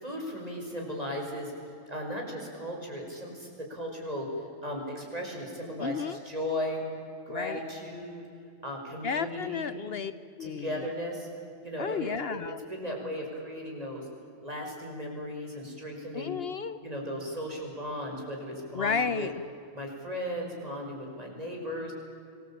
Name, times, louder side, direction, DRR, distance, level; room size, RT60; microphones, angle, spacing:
voice 1, 0.0-1.5 1.9-4.3 4.6-6.8 7.3-8.2 8.6-9.7 10.4-11.3 11.6-12.4 12.7-14.1 14.4-16.4 16.8-19.3 19.7-21.9, equal, 35° right, 0 dB, 5.8 m, -36 dB
voice 2, 5.8-6.2 7.3-7.6 9.0-10.1 10.4-10.9 11.8-12.6 16.1-16.8 18.7-19.3, left 6 dB, 60° left, 13 dB, 1.0 m, -32 dB
26.0 x 20.5 x 8.7 m, 2.5 s
omnidirectional pair, 1.2 m